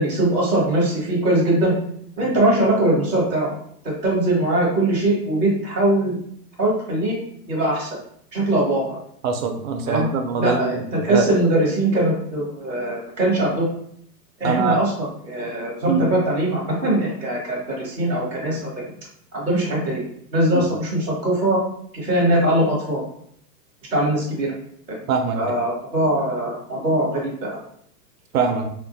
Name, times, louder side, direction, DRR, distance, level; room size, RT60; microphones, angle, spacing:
voice 1, 0.0-1.7 2.2-3.5 4.0-6.2 6.6-7.2 7.5-8.0 8.3-8.8 9.9-10.1 10.4-13.7 14.4-18.7 19.3-20.0 20.3-21.6 21.9-23.0 23.9-24.5 24.9-25.0 25.3-27.6, right 1 dB, 5° left, -19 dB, 0.4 m, -21 dB
voice 2, 9.2-11.3 14.4-14.8 15.8-16.1 20.5-20.6 25.1-25.6 28.3-28.7, right 5 dB, 60° right, 5 dB, 0.5 m, -23 dB
3.6 x 2.1 x 2.6 m, 0.66 s
supercardioid pair, 160°, 48 cm